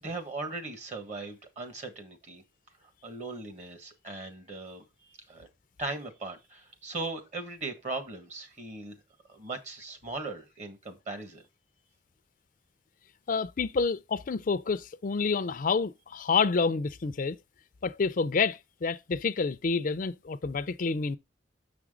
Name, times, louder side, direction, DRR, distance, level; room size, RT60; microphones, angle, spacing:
voice 1, 0.0-2.4 3.0-4.8 5.3-5.5 5.8-9.0 9.3-11.5, right 3 dB, 40° right, 1.6 m, -38 dB
voice 2, 13.3-17.4 17.8-21.2, left 4 dB, 50° left, 0.5 m, -28 dB
6.6 x 6.1 x 3.8 m
head